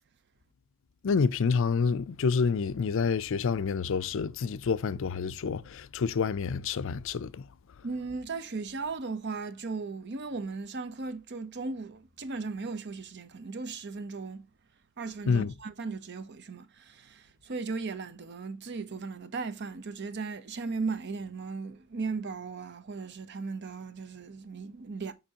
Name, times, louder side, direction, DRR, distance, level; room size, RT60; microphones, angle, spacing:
voice 1, 1.0-7.5 15.3-15.5, left 5 dB, 65° left, 0.4 m, -28 dB
voice 2, 7.8-14.5 15.0-25.1, right 4 dB, 55° right, 0.7 m, -37 dB
6.8 x 5.3 x 2.8 m
head